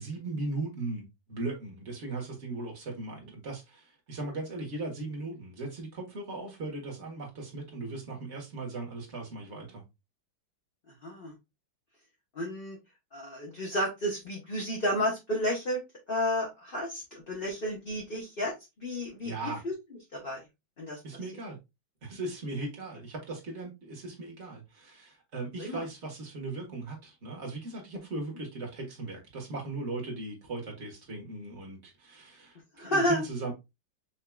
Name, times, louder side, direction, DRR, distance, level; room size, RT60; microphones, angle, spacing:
voice 1, 0.0-9.8 19.2-19.6 21.0-21.6 22.0-33.5, right 2 dB, 35° right, 1.6 m, -38 dB
voice 2, 11.0-11.3 12.3-12.8 13.1-15.8 16.1-19.7 20.1-20.4 20.8-21.0 25.6-25.8 32.7-33.2, left 1 dB, 35° left, 1.1 m, -31 dB
5.7 x 2.8 x 2.3 m
omnidirectional pair, 2.2 m